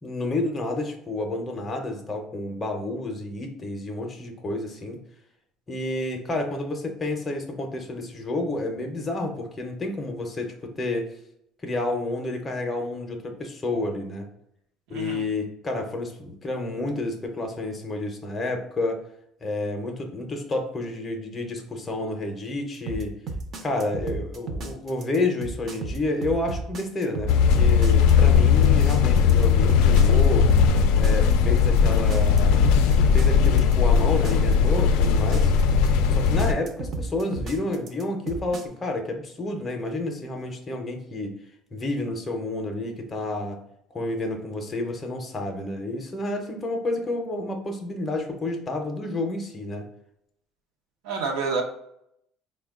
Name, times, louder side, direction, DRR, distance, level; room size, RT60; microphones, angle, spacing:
voice 1, 0.0-5.0 5.7-11.1 11.6-14.3 14.9-19.0 19.4-23.1 23.6-27.3 27.6-30.6 30.9-32.6 32.9-35.5 36.1-41.3 41.7-43.6 43.9-49.8, left 2 dB, 15° left, 3 dB, 0.5 m, -30 dB
voice 2, 14.9-15.3 51.0-51.6, right 4 dB, 85° right, 2 dB, 0.6 m, -28 dB
sound 1, 22.9-38.6, right 3 dB, 35° right, 0.5 m, -33 dB
sound 2, 27.3-36.5, left 6 dB, 75° left, 0.3 m, -18 dB
4.4 x 2.1 x 3.5 m, 0.75 s
cardioid pair, 170°, 0 cm